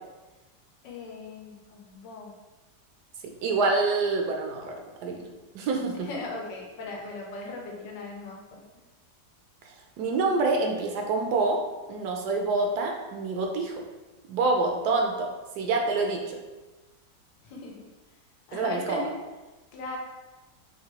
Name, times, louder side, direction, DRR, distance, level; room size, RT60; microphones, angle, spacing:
voice 1, 0.8-2.3 6.0-8.6 17.4-17.8 18.5-19.1 19.7-20.0, left 3 dB, 85° left, 0 dB, 1.4 m, -38 dB
voice 2, 3.2-4.7 5.0-5.3 5.5-6.1 10.0-11.6 11.9-13.8 14.3-15.3 15.6-16.4 18.5-19.1, right 3 dB, 75° right, 2 dB, 1.1 m, -26 dB
4.8 x 2.7 x 2.9 m, 1.2 s
omnidirectional pair, 1.9 m